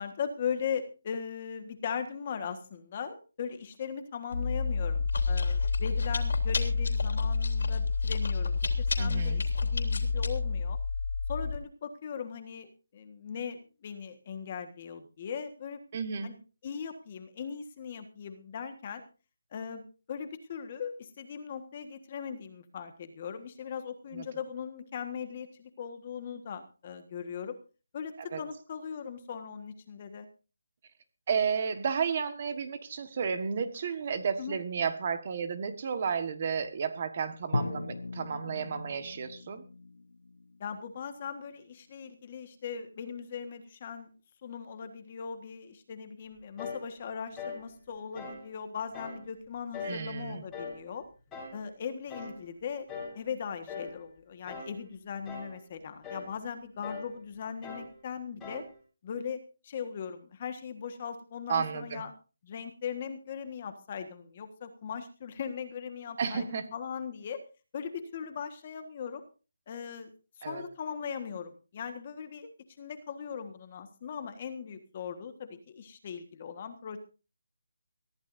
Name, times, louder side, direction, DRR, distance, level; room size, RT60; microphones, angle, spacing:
voice 1, 0.0-10.8 11.3-15.8 16.2-16.4 16.6-19.0 19.5-27.6 27.9-30.3 34.4-34.5 40.6-44.1 44.4-51.0 51.5-52.9 53.1-58.6 59.0-62.1 62.4-67.4 67.7-69.2 69.7-70.1 70.4-72.5 72.8-77.0, left 7 dB, 25° left, 9 dB, 1.5 m, -39 dB
Chewing mastication, 4.3-11.6, left 4 dB, 55° left, 3.3 m, -29 dB
voice 2, 9.0-9.4 15.9-16.3 24.1-24.2 28.3-28.4 31.3-39.6 49.8-50.4 61.5-62.0 66.2-66.6 70.4-70.6, right 6 dB, 25° right, 10 dB, 1.4 m, -32 dB
Drum, 37.5-41.5, left 2 dB, 90° left, 1.2 m, -38 dB
sound 1, 46.6-46.9 47.4-47.6 48.2-48.5 48.9-49.2 49.7-50.0 50.5-50.8 51.3-51.6 52.1-52.4 52.9-53.2 53.7-54.0 54.5-54.8 55.3-55.6 56.0-56.3 56.8-57.1 57.6-57.9 58.4-58.7, left 4 dB, 5° left, 4.0 m, -41 dB
23.5 x 15.0 x 2.6 m, 0.35 s
hypercardioid pair, 175°, 0 cm